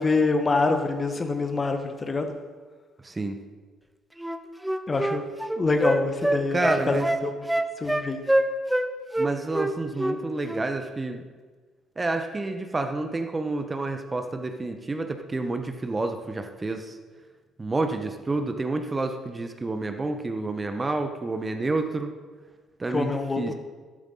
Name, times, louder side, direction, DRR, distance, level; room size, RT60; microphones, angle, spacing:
voice 1, 0.0-2.3 4.9-5.3 5.6-6.6 6.9-7.5 7.8-8.2 22.9-23.5, left 3 dB, 30° left, 6 dB, 1.5 m, -25 dB
voice 2, 3.0-3.4 6.5-7.1 9.2-11.2 12.0-16.9 17.6-22.2 22.8-23.5, right 2 dB, 25° right, 6 dB, 1.3 m, -29 dB
Wind instrument woodwind instrument, 4.2-8.9 9.1-10.2 10.4-10.6, right 1 dB, 5° right, 1.0 m, -25 dB
13.0 x 12.5 x 4.2 m, 1.4 s
hypercardioid pair, 45°, 0 cm